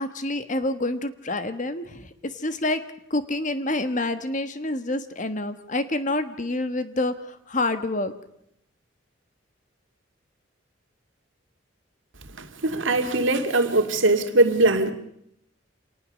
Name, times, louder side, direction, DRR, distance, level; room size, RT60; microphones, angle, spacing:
voice 1, 0.0-2.1 2.3-2.8 3.1-8.1, left 2 dB, 40° left, 11 dB, 1.5 m, -27 dB
voice 2, 12.4-14.9, right 2 dB, 75° right, 7 dB, 2.2 m, -21 dB
27.0 x 19.5 x 6.5 m, 0.75 s
head